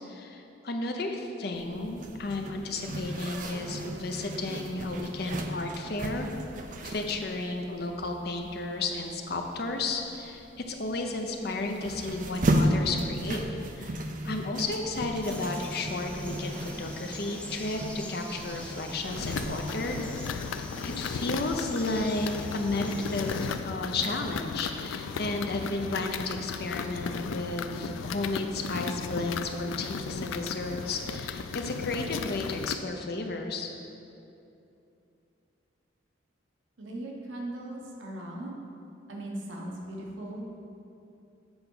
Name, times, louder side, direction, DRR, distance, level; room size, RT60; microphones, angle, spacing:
voice 1, 0.0-6.3 6.8-13.4 13.8-20.0 20.8-33.7, left 2 dB, 55° left, 3 dB, 0.6 m, -33 dB
Zipper (clothing), 1.5-20.1, right 1 dB, 40° right, 0.5 m, -35 dB
Frog, 15.2-23.6, left 1 dB, 5° left, 0.5 m, -44 dB
sound 1, 19.1-32.8, left 5 dB, 85° left, 0.3 m, -36 dB
voice 2, 36.8-38.5 39.1-40.5, right 1 dB, 80° right, -1 dB, 1.1 m, -38 dB
8.0 x 4.6 x 5.4 m, 2.7 s
head